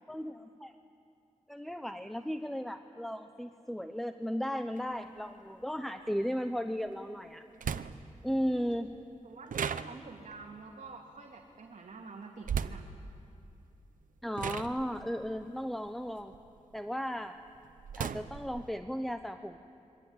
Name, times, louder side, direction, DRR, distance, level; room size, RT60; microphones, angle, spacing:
voice 1, 0.1-0.7 1.5-7.4 8.2-8.9 14.2-16.3 16.7-17.4 18.0-19.6, equal, ahead, 7 dB, 0.9 m, -35 dB
sound 1, 4.8-4.9 6.9-7.0 7.6-8.2 9.5-10.3 12.4-12.9 13.8-14.0 14.4-16.8 17.2-18.7, right 7 dB, 85° right, 0.8 m, -37 dB
voice 2, 9.2-12.8, right 4 dB, 65° right, -1 dB, 2.7 m, -48 dB
26.0 x 24.0 x 8.9 m, 2.6 s
wide cardioid pair, 90°, 13 cm